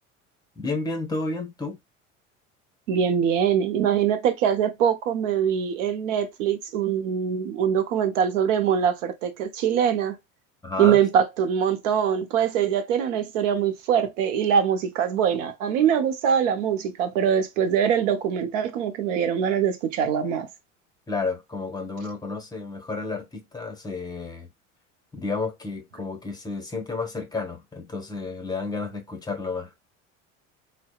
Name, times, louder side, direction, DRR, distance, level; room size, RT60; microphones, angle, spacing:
voice 1, 0.6-1.8 10.6-11.0 21.1-24.5 25.1-29.8, left 3 dB, 10° left, 0.8 m, -31 dB
voice 2, 2.9-10.2 10.8-20.5, right 8 dB, 70° right, 0.7 m, -23 dB
2.7 x 2.1 x 2.2 m
hypercardioid pair, 80°, 38 cm